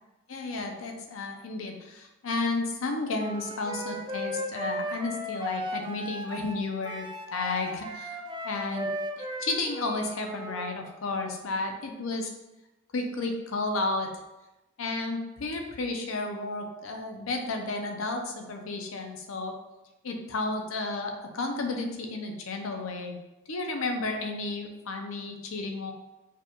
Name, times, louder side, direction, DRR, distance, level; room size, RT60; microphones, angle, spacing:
voice 1, 0.3-8.2 8.4-8.9 9.2-12.3 12.9-14.1 14.8-19.5 20.0-23.2 23.5-25.9, left 3 dB, 70° left, 3 dB, 0.6 m, -32 dB
Wind instrument woodwind instrument, 3.2-10.7, equal, 20° right, 0.3 m, -36 dB
4.7 x 2.4 x 2.9 m, 1.0 s
head